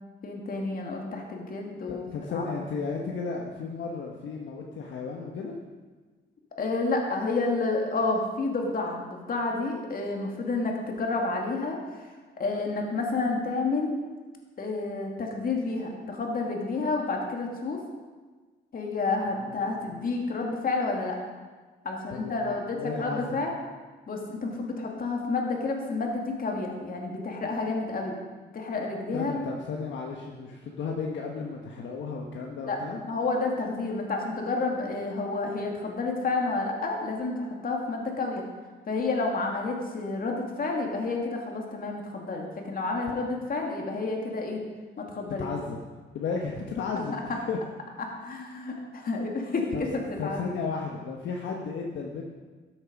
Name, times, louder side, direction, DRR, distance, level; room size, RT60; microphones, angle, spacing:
voice 1, 0.2-2.5 6.6-12.1 12.4-13.9 14.6-17.8 18.7-21.2 21.8-23.5 24.1-28.2 28.5-29.4 32.6-32.8 33.0-38.4 38.9-44.6 45.0-45.5 46.9-47.2 48.2-50.4, left 3 dB, 45° left, 1 dB, 2.4 m, -30 dB
voice 2, 1.9-5.6 19.3-19.9 22.1-23.4 29.1-33.0 43.1-43.2 45.4-45.8 46.1-47.6 49.7-49.8 50.2-52.2, left 5 dB, 70° left, 0 dB, 1.3 m, -34 dB
13.0 x 8.0 x 5.2 m, 1.3 s
cardioid pair, 90°, 20 cm